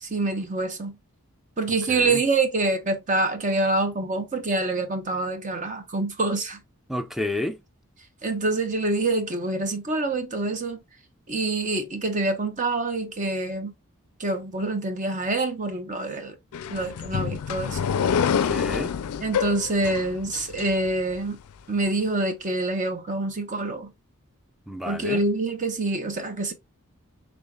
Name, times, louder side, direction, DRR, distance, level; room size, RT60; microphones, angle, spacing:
voice 1, 0.0-0.9 1.6-6.6 8.2-10.8 11.3-13.7 14.2-16.3 16.7-17.8 19.2-21.4 21.7-23.9 24.9-26.5, right 2 dB, 35° right, 0.9 m, -26 dB
voice 2, 1.9-2.2 6.9-7.6 18.3-18.9 24.7-25.2, left 1 dB, ahead, 0.4 m, -31 dB
sound 1, 16.5-21.2, left 7 dB, 75° left, 0.4 m, -27 dB
5.5 x 3.5 x 2.3 m
head